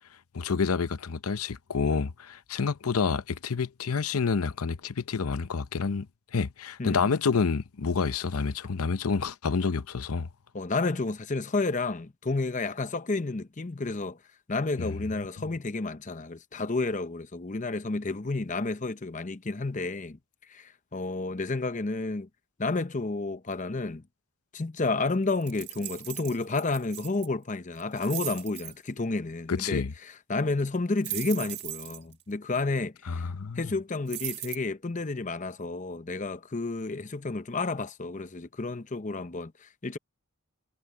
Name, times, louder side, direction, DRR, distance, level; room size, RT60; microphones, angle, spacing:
voice 1, 0.3-6.1 6.3-10.3 14.8-14.9 29.5-29.9 33.1-33.7, left 5 dB, 85° left, 0.7 m, -28 dB
voice 2, 6.8-7.1 10.5-14.2 14.5-20.2 20.5-22.3 22.6-24.0 24.5-33.3 33.6-40.0, left 3 dB, 35° left, 0.7 m, -31 dB
sound 1, 25.4-27.3 27.8-28.7 31.0-32.1 34.1-34.6, right 14 dB, 50° right, 1.5 m, -38 dB
head